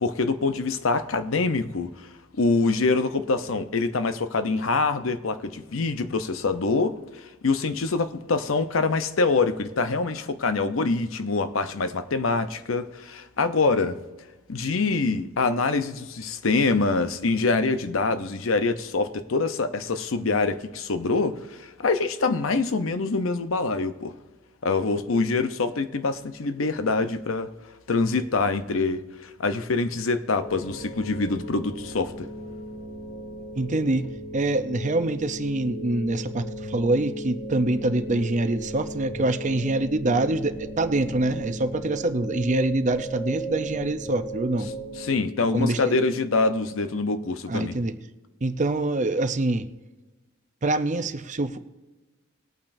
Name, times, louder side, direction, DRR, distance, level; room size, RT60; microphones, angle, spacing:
voice 1, 0.0-1.9 2.3-7.0 7.4-14.0 14.5-24.1 24.6-27.5 27.9-32.3 45.0-47.8, left 3 dB, 85° left, 0.7 m, -25 dB
sound 1, 30.4-45.1, right 1 dB, 65° left, 4.4 m, -36 dB
voice 2, 33.5-44.7 45.5-46.0 47.5-47.9 48.4-49.7 50.6-51.6, right 2 dB, 40° right, 0.6 m, -25 dB
20.5 x 8.8 x 2.6 m
head